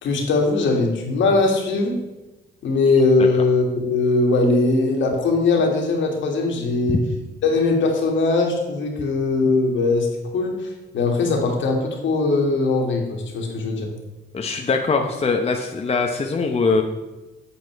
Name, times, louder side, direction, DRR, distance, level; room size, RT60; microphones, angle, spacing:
voice 1, 0.0-2.0 2.6-7.0 7.4-10.1 10.3-10.6 10.9-13.9, left 3 dB, 70° left, 1 dB, 2.3 m, -20 dB
voice 2, 14.3-16.8, left 4 dB, 30° left, 3 dB, 1.0 m, -22 dB
8.0 x 7.9 x 4.6 m, 1.1 s
cardioid pair, 90°, 20 cm